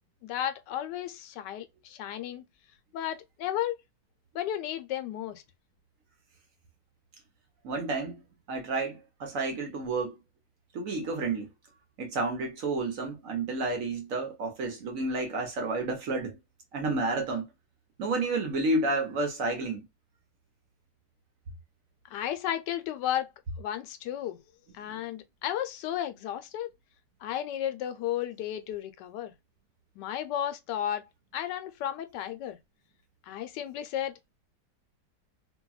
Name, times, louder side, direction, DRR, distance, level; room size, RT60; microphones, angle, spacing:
voice 1, 0.2-2.4 2.9-3.8 4.3-5.4 22.1-23.3 23.6-24.4 24.7-26.7 27.2-29.3 30.0-31.0 31.3-32.6 33.3-34.3, left 11 dB, 80° left, 1.2 m, -33 dB
voice 2, 7.6-8.2 8.5-10.2 10.7-11.5 12.0-16.3 16.7-17.5 18.0-19.8 24.9-25.0, right 2 dB, 60° right, 1.0 m, -30 dB
2.8 x 2.7 x 2.3 m
omnidirectional pair, 1.9 m